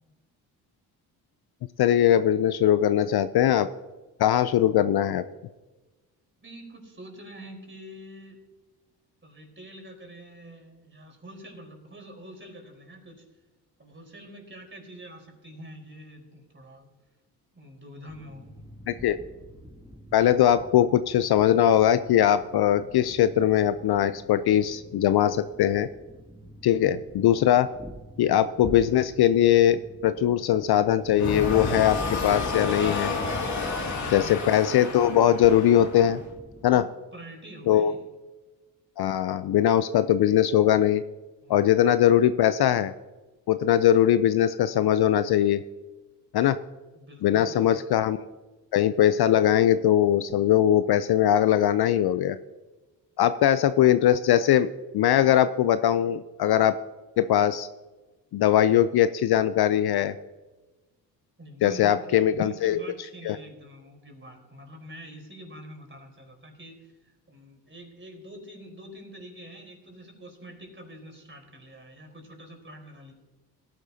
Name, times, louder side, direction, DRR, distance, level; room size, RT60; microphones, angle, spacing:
voice 1, 1.8-3.7 4.2-5.2 18.9-19.2 20.1-25.9 26.6-27.7 28.2-33.1 34.1-36.2 36.6-36.8 37.7-37.9 39.0-41.0 41.5-42.9 43.5-45.6 46.3-46.6 47.2-48.2 48.7-52.4 53.2-54.7 54.9-56.8 57.2-57.7 58.3-60.1 61.6-62.8 63.2-63.4, left 11 dB, 50° left, 13 dB, 0.6 m, -21 dB
voice 2, 6.4-8.4 9.2-13.2 13.8-16.9 17.5-18.6 36.6-38.0 41.4-41.7 46.9-47.9 61.4-73.1, right 1 dB, 25° right, 1 dB, 4.2 m, -46 dB
sound 1, 18.1-36.8, equal, 10° right, 2.3 m, -47 dB
sound 2, 31.1-36.3, left 3 dB, 35° left, 2.5 m, -30 dB
17.0 x 11.0 x 2.8 m, 1.2 s
hypercardioid pair, 45°, 48 cm